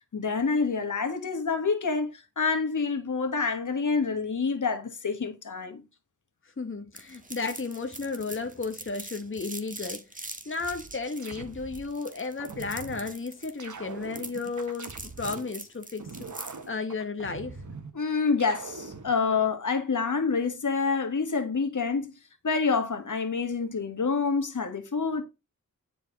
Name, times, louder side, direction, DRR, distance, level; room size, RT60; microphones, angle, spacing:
voice 1, 0.1-5.8 17.9-22.1 22.4-25.2, left 4 dB, 65° left, 1.7 m, -27 dB
voice 2, 6.6-16.1 16.3-17.6, left 4 dB, 40° left, 1.1 m, -34 dB
sound 1, 7.0-16.7, right 2 dB, 25° right, 1.5 m, -43 dB
sound 2, 10.6-11.9 12.4-13.1 13.6-15.5 16.0-17.9 18.4-19.1, right 4 dB, 65° right, 1.4 m, -42 dB
10.0 x 4.6 x 3.9 m
wide cardioid pair, 60°, 32 cm